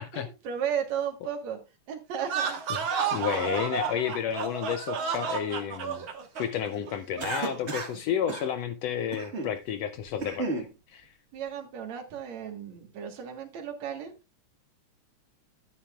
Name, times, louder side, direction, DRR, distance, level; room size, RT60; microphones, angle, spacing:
voice 1, 0.1-1.6 1.9-2.6 11.3-14.1, right 8 dB, 70° right, 2.7 m, -34 dB
sound 1, 2.2-7.6, right 6 dB, 50° right, 1.9 m, -32 dB
voice 2, 3.1-6.1 6.4-10.5 10.9-11.1, left 9 dB, 75° left, 1.5 m, -31 dB
Cough, 7.2-8.0 8.3-8.5 9.1-9.5 10.0-10.7, right 3 dB, 35° right, 1.1 m, -33 dB
12.0 x 10.0 x 2.4 m
omnidirectional pair, 3.4 m